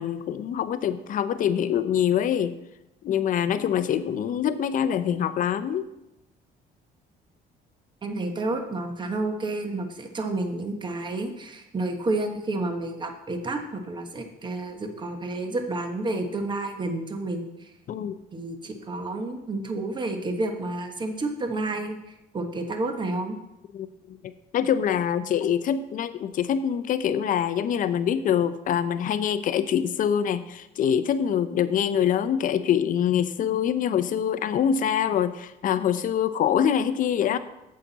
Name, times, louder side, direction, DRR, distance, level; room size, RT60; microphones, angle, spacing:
voice 1, 0.0-2.6 3.0-5.9 17.9-18.1 23.7-37.4, left 9 dB, 55° left, 12 dB, 0.6 m, -25 dB
voice 2, 8.0-17.5 18.3-22.0 22.3-23.4, right 2 dB, 25° right, 5 dB, 1.1 m, -30 dB
8.5 x 7.5 x 4.0 m, 0.90 s
cardioid pair, 110°, 17 cm